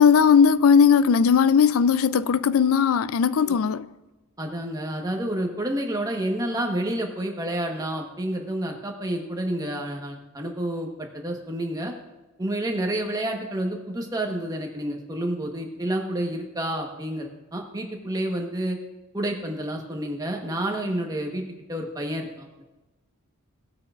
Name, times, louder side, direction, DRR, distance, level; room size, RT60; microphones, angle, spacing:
voice 1, 0.0-3.9, left 6 dB, 70° left, 0.4 m, -18 dB
voice 2, 4.4-11.9 12.4-18.8 19.1-21.4 21.7-22.5, right 1 dB, 15° right, 1.2 m, -29 dB
17.5 x 8.3 x 2.5 m
head